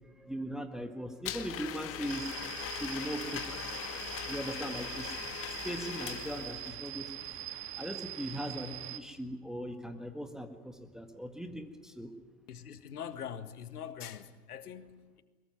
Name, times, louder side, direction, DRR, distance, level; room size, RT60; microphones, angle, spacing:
voice 1, 0.0-3.7 4.2-5.1 5.6-7.1 7.5-12.1, equal, ahead, 5 dB, 1.7 m, -40 dB
Domestic sounds home sounds, 1.2-6.9, left 10 dB, 30° left, 1.9 m, -40 dB
sound 1, 2.0-9.0, right 12 dB, 35° right, 2.5 m, -43 dB
voice 2, 12.5-15.2, left 8 dB, 70° left, 10 dB, 1.9 m, -43 dB
22.5 x 21.5 x 9.6 m, 1.3 s
hypercardioid pair, 105°, 46 cm